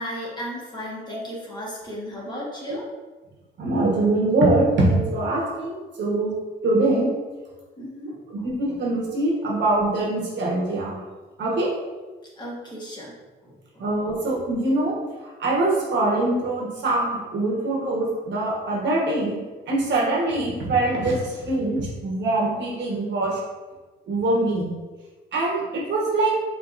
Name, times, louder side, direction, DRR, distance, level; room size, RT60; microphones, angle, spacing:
voice 1, 0.0-2.8 7.8-8.5 12.4-14.2, equal, 20° left, -5 dB, 1.3 m, -35 dB
voice 2, 3.6-7.1 8.3-11.0 11.4-11.7 13.8-15.0 15.4-19.3 19.7-23.4 24.1-24.7 25.3-26.3, right 2 dB, 65° right, -3 dB, 1.3 m, -23 dB
4.6 x 3.2 x 2.6 m, 1.2 s
cardioid pair, 90°, 20 cm